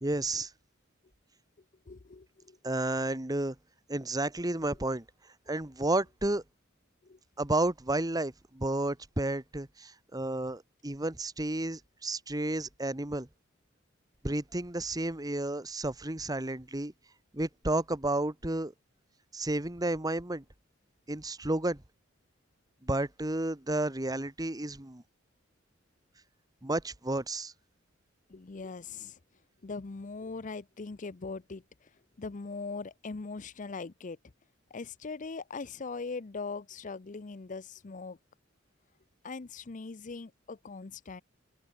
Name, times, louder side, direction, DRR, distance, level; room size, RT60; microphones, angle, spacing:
voice 1, 0.0-0.5 2.6-3.5 3.9-5.0 5.5-6.4 7.4-13.3 14.2-16.9 17.3-18.7 19.3-20.4 21.1-21.8 22.8-25.0 26.6-27.5, right 2 dB, 20° right, 1.4 m, -31 dB
voice 2, 1.9-2.6 7.0-7.2 28.3-29.2 29.6-31.9 32.2-34.2 34.7-38.2 39.2-41.2, left 4 dB, 40° left, 0.6 m, -40 dB
head